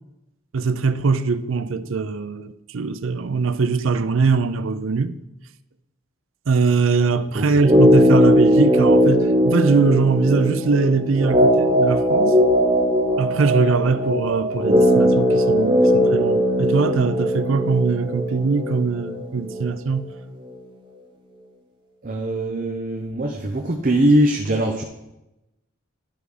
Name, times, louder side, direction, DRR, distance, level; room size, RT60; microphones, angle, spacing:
voice 1, 0.5-5.2 6.5-12.4 13.2-20.1, right 4 dB, 75° right, 0.5 m, -21 dB
sound 1, 7.6-19.7 19.9-20.0, equal, 25° right, 1.0 m, -19 dB
voice 2, 22.0-24.8, right 1 dB, 40° right, 0.7 m, -21 dB
12.0 x 4.9 x 5.0 m
head